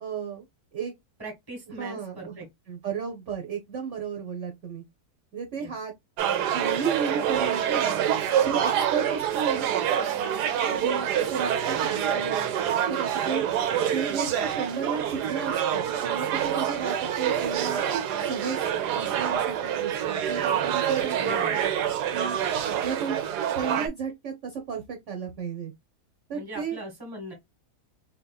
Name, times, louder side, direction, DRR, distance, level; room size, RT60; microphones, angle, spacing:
voice 1, 0.0-0.4 0.7-0.9 1.8-2.4 2.7-4.8 5.3-5.9 6.5-7.9 8.4-9.7 10.2-12.5 12.9-13.4 13.9-17.8 18.3-18.6 18.9-21.6 22.1-23.2 23.5-25.7 26.3-26.8, right 6 dB, 55° right, 1.0 m, -33 dB
voice 2, 1.2-2.5 5.5-5.7 21.1-21.6 26.3-27.3, right 1 dB, 15° right, 1.3 m, -39 dB
sound 1, 6.2-23.9, right 9 dB, 85° right, 1.3 m, -26 dB
4.0 x 2.9 x 2.2 m
omnidirectional pair, 1.7 m